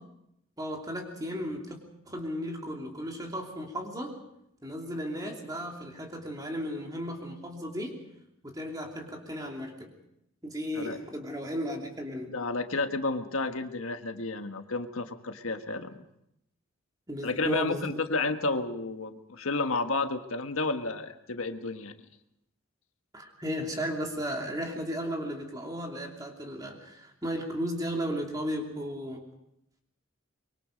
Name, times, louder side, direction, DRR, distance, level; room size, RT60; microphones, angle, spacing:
voice 1, 0.6-1.8 2.0-4.1 4.6-8.0 8.4-9.9 10.4-12.3 17.1-18.0 23.1-29.2, equal, 15° right, 1 dB, 2.8 m, -35 dB
voice 2, 12.3-15.9 17.2-21.9, left 3 dB, 85° left, 7 dB, 1.5 m, -31 dB
24.5 x 23.0 x 5.2 m, 0.78 s
head